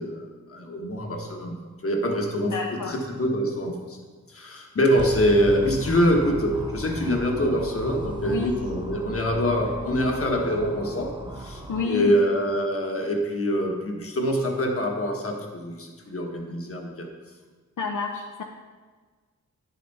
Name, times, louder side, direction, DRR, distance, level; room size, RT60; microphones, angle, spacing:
voice 1, 0.0-4.0 4.3-17.1, equal, 45° left, 2 dB, 1.3 m, -25 dB
voice 2, 2.4-2.9 8.3-8.5 11.7-12.2 17.8-18.4, left 5 dB, 70° left, 2 dB, 0.7 m, -29 dB
sound 1, 5.0-11.8, right 1 dB, 15° right, 0.9 m, -36 dB
10.0 x 7.2 x 4.2 m, 1.5 s
wide cardioid pair, 120°, 32 cm